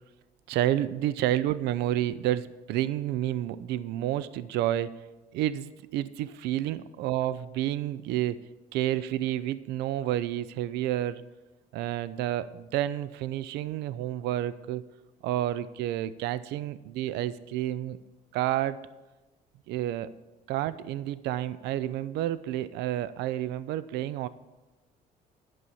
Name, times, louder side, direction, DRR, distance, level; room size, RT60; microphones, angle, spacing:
voice 1, 0.5-5.0 5.3-8.4 8.7-11.2 11.7-14.9 15.2-18.0 18.3-18.9 19.7-20.1 20.5-24.3, right 13 dB, 85° right, 16 dB, 0.4 m, -30 dB
11.0 x 5.5 x 8.4 m, 1.1 s
cardioid pair, 110°, 17 cm